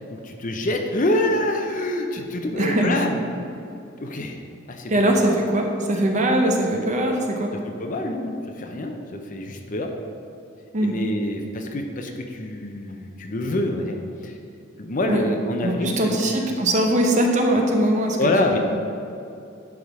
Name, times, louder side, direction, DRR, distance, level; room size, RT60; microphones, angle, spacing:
voice 1, 0.1-3.2 4.0-4.4 4.7-4.9 7.8-9.9 10.8-14.0 14.2-14.3 14.8-16.2 18.2-18.6, left 1 dB, 40° left, 4 dB, 0.6 m, -26 dB
voice 2, 2.6-2.9 4.9-7.5 10.7-11.0 15.1-15.2 15.6-18.6, right 1 dB, 35° right, 2 dB, 0.8 m, -21 dB
10.5 x 3.7 x 4.8 m, 2.6 s
head